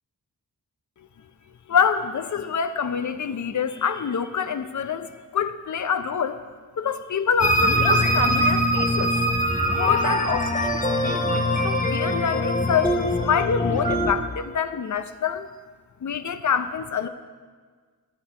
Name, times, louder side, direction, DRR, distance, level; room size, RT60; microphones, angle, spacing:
voice 1, 1.7-6.4 6.8-9.1 9.7-15.5 16.0-17.1, left 7 dB, 60° left, 9 dB, 0.7 m, -26 dB
sound 1, 7.4-14.1, equal, 25° left, 1.2 m, -22 dB
10.5 x 8.8 x 4.3 m, 1.5 s
cardioid pair, 60°, 34 cm